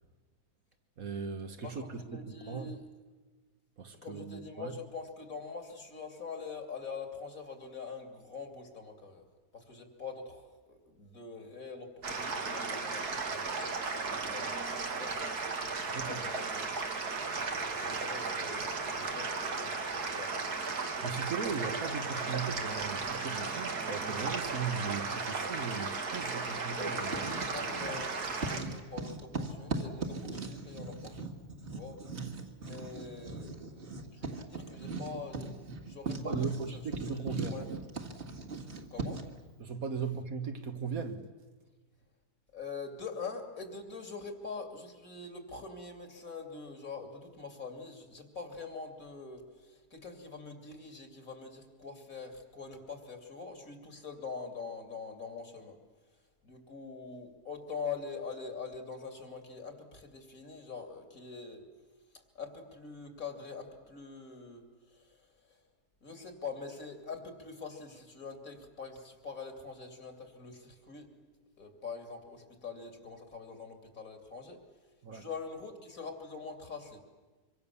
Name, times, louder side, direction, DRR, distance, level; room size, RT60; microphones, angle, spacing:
voice 1, 1.0-2.7 3.8-4.8 15.9-16.3 21.0-27.3 32.1-32.4 36.2-37.7 39.6-41.3 75.0-75.3, right 5 dB, 65° right, 1.9 m, -38 dB
voice 2, 1.6-2.8 3.9-9.3 9.5-15.2 15.9-17.0 17.8-20.6 26.7-28.2 28.5-31.2 31.7-32.0 32.6-36.8 37.1-37.7 38.9-39.2 42.5-55.8 56.4-61.7 62.1-65.6 66.0-71.1 71.6-74.6 75.1-77.0, left 4 dB, 60° left, 3.3 m, -44 dB
sound 1, 12.0-28.6, right 4 dB, 85° right, 2.5 m, -35 dB
Writing, 27.0-28.1 28.4-39.4, right 3 dB, 45° right, 2.2 m, -39 dB
25.0 x 24.5 x 7.1 m
omnidirectional pair, 1.6 m